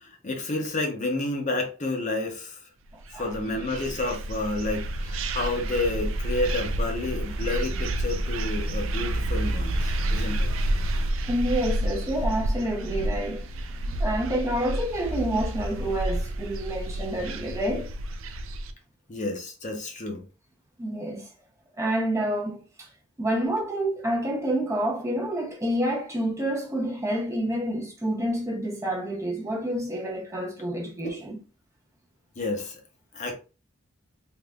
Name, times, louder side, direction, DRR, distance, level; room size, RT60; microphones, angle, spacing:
voice 1, 0.0-2.6 3.1-10.5 19.1-20.2 31.0-31.2 32.4-32.8 33.1-33.4, left 2 dB, 35° left, 0.7 m, -30 dB
sound 1, 3.0-18.7, right 1 dB, 80° right, 0.4 m, -29 dB
voice 2, 11.3-13.5 13.9-17.9 20.8-21.3 21.8-22.9 23.2-31.4, right 1 dB, 15° right, 0.6 m, -28 dB
3.6 x 3.1 x 2.3 m
head